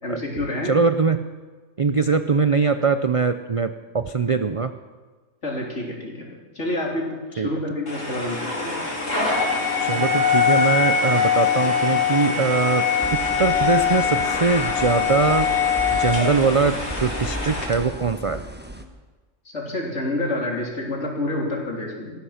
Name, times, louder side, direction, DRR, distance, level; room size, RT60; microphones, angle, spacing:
voice 1, 0.0-0.7 5.4-6.3 6.6-8.7 9.8-9.9 19.5-22.1, left 1 dB, 65° left, -1 dB, 3.7 m, -28 dB
voice 2, 0.6-1.2 1.8-4.7 7.4-7.5 9.8-15.5 15.9-18.4, right 5 dB, 45° right, 9 dB, 0.4 m, -22 dB
sound 1, 7.9-17.7, left 6 dB, 80° left, 4.0 m, -22 dB
sound 2, 13.0-18.8, equal, 10° right, 1.0 m, -35 dB
18.0 x 14.0 x 5.8 m, 1.3 s
omnidirectional pair, 1.3 m